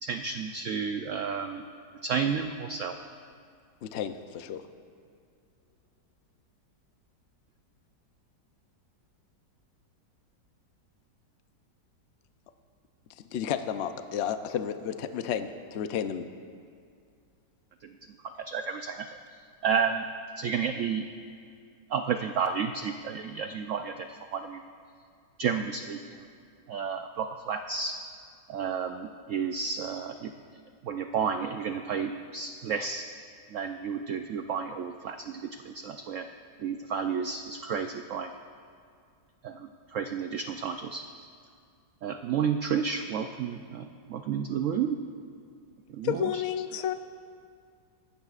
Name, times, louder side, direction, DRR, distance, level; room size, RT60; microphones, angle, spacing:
voice 1, 0.0-1.6 2.0-3.0 17.8-17.9 18.5-19.1 19.6-20.1 20.4-21.1 21.9-24.7 25.4-26.2 26.7-28.0 28.5-30.3 30.8-33.1 33.5-36.3 36.6-38.3 39.4-41.3 42.0-45.0 45.9-46.4, right 6 dB, 90° right, 7 dB, 0.6 m, -31 dB
voice 2, 3.8-4.6 13.3-16.3, left 8 dB, 85° left, 9 dB, 0.5 m, -32 dB
voice 3, 46.0-46.9, left 10 dB, 65° left, 9 dB, 1.0 m, -29 dB
24.0 x 13.0 x 2.4 m, 2.3 s
omnidirectional pair, 1.9 m